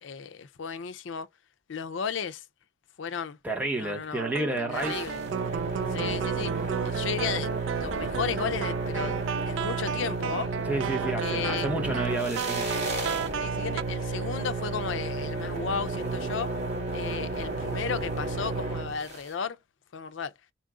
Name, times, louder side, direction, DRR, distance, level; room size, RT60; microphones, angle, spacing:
voice 1, 0.0-1.3 1.7-2.4 3.0-3.4 3.8-4.2 4.7-5.2 5.9-6.5 6.8-10.5 11.0-11.7 13.4-16.5 16.9-19.6 19.9-20.3, left 6 dB, 85° left, 0.5 m, -34 dB
voice 2, 3.4-5.1 10.7-12.7, right 2 dB, 10° right, 1.0 m, -30 dB
sound 1, 4.2-13.8, right 8 dB, 80° right, 0.3 m, -34 dB
sound 2, 4.7-19.3, right 3 dB, 35° right, 2.2 m, -32 dB
4.4 x 2.4 x 3.7 m
head